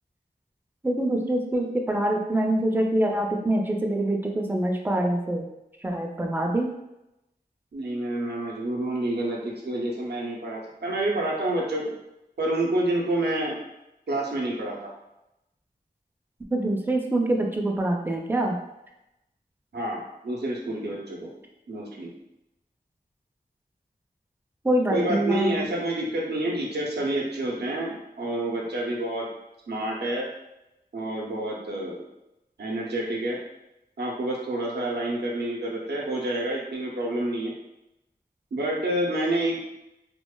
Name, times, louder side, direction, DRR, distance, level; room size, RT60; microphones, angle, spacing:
voice 1, 0.8-5.5 5.8-6.7 16.5-18.5 24.6-25.6, right 1 dB, 10° right, 1 dB, 0.4 m, -25 dB
voice 2, 7.7-11.9 12.4-13.6 14.1-14.9 19.7-21.3 21.7-22.1 24.9-29.3 29.7-30.3 30.9-32.0 32.6-33.4 34.0-37.5 38.5-39.6, right 1 dB, 90° right, -2 dB, 0.5 m, -28 dB
3.0 x 2.0 x 2.2 m, 0.90 s
wide cardioid pair, 70°, 17 cm